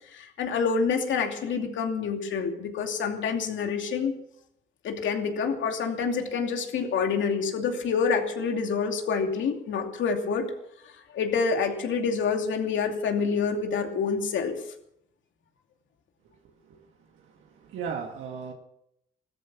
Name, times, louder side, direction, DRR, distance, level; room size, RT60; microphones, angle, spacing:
voice 1, 0.1-4.1 4.8-10.5 11.1-14.5, left 5 dB, 70° left, 4 dB, 2.7 m, -27 dB
voice 2, 17.2-18.5, right 6 dB, 85° right, 1 dB, 2.1 m, -36 dB
16.5 x 13.5 x 6.2 m, 0.76 s
cardioid pair, 90°, 20 cm